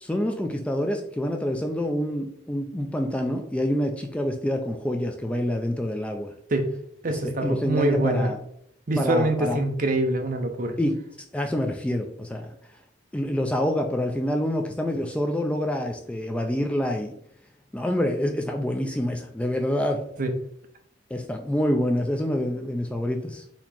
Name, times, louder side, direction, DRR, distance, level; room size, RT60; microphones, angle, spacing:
voice 1, 0.0-6.3 7.1-8.4 9.0-9.6 10.8-11.0 11.3-12.6 13.1-17.1 17.7-20.0 21.1-23.4, left 1 dB, 5° left, 3 dB, 0.3 m, -27 dB
voice 2, 7.0-8.3 8.9-10.8 20.2-20.3, right 1 dB, 45° right, 5 dB, 0.6 m, -24 dB
4.3 x 2.8 x 4.2 m, 0.71 s
head